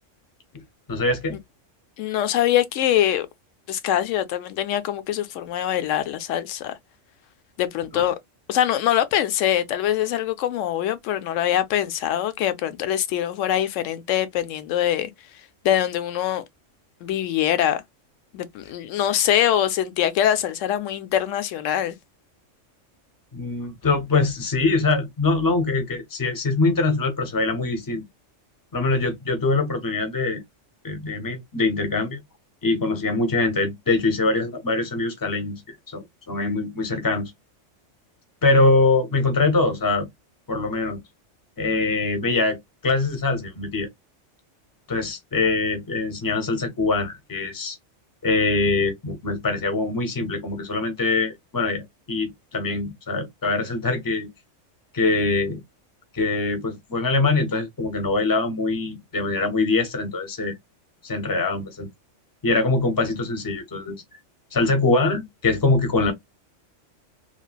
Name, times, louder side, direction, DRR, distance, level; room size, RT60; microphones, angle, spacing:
voice 1, 0.9-1.4 7.9-8.0 23.3-28.1 28.7-30.4 30.8-32.2 32.6-37.3 38.4-40.1 40.5-41.0 41.6-43.9 44.9-47.8 48.2-54.3 54.9-55.6 56.1-60.5 61.0-61.9 62.4-64.0 64.5-66.1, left 3 dB, 20° left, 0.6 m, -23 dB
voice 2, 2.0-3.3 3.7-6.8 7.6-8.2 8.5-15.1 15.6-16.4 17.0-17.8 18.3-21.9, left 11 dB, 80° left, 0.9 m, -23 dB
3.2 x 2.3 x 2.3 m
omnidirectional pair, 1.3 m